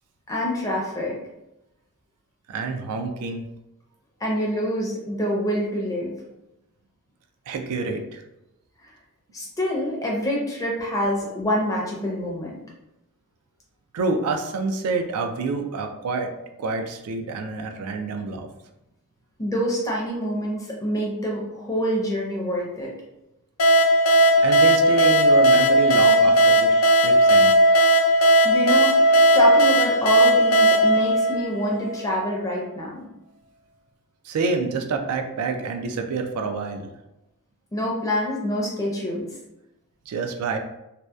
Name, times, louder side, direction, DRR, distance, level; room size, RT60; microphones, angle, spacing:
voice 1, 0.3-1.2 4.2-6.1 9.3-12.6 19.4-22.9 28.4-29.1 29.3-33.1 37.7-39.3, equal, 15° left, -3 dB, 0.5 m, -26 dB
voice 2, 2.5-3.5 7.5-8.2 13.9-16.3 16.6-18.5 24.4-27.5 34.2-36.9 40.1-40.6, right 3 dB, 85° right, 5 dB, 0.3 m, -27 dB
sound 1, 23.6-32.0, right 1 dB, 80° left, 0.4 m, -16 dB
2.7 x 2.0 x 2.2 m, 0.90 s
head